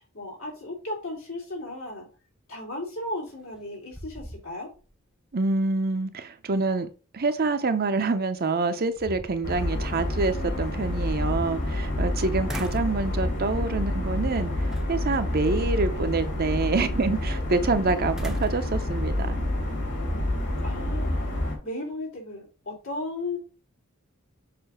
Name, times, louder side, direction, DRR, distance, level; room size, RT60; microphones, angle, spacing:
voice 1, 0.1-2.1 2.5-4.7 12.4-13.4 15.5-15.7 20.6-21.2 21.6-23.4, left 2 dB, 80° left, -3 dB, 3.0 m, -36 dB
sound 1, 3.3-3.6 3.9-4.9 5.3-5.4 8.1-8.2 8.8-9.7 11.0-12.1 12.5-13.0 13.5-13.9 14.7-15.2 18.2-20.0, equal, ahead, 0.7 m, -41 dB
voice 2, 5.3-6.9 7.1-14.5 14.9-19.4, right 3 dB, 45° right, 9 dB, 0.7 m, -26 dB
sound 2, 9.4-21.6, left 1 dB, 60° left, 2.4 m, -28 dB
6.8 x 2.7 x 5.6 m, 0.34 s
head